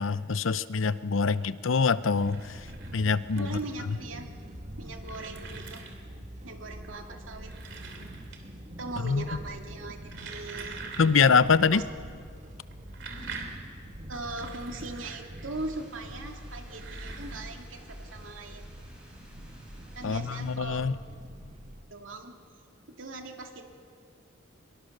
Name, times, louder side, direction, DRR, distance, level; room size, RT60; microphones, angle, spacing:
voice 1, 0.0-2.6 2.9-3.6 9.0-9.2 11.0-11.8 20.0-20.9, left 5 dB, 80° left, 15 dB, 0.7 m, -24 dB
sound 1, 2.0-3.8 4.5-6.2 7.2-8.7 8.9-9.4 9.8-11.5 11.8-11.9 12.7-15.8 16.5-17.4, right 4 dB, 65° right, 2.8 m, -44 dB
sound 2, 2.2-21.8, equal, 40° right, 1.8 m, -45 dB
voice 2, 3.3-4.3 4.8-5.8 6.4-7.5 8.8-10.8 11.7-11.8 14.1-18.8 20.0-20.9 21.9-22.3 22.9-23.6, right 2 dB, 85° right, 3 dB, 2.5 m, -40 dB
sound 3, 15.5-20.5, equal, 5° right, 7.4 m, -55 dB
24.0 x 22.5 x 6.6 m, 2.2 s
head